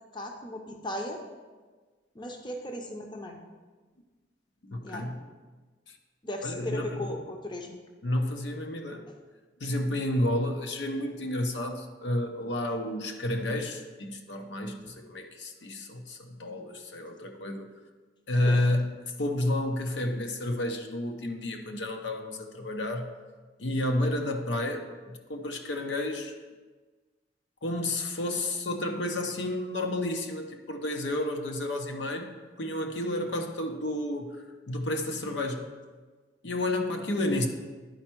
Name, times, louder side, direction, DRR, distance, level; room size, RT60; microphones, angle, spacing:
voice 1, 0.1-1.2 2.1-3.4 4.8-5.1 6.2-7.8 14.8-15.0 18.4-18.7, left 1 dB, 25° left, 3 dB, 0.7 m, -37 dB
voice 2, 4.7-5.3 5.9-6.0 6.4-7.1 8.0-9.0 9.6-17.7 18.3-23.1 23.6-26.3 27.6-32.3 32.6-34.4 34.7-35.7 36.4-37.5, left 1 dB, 70° left, 4 dB, 0.7 m, -31 dB
10.5 x 4.4 x 4.5 m, 1.4 s
head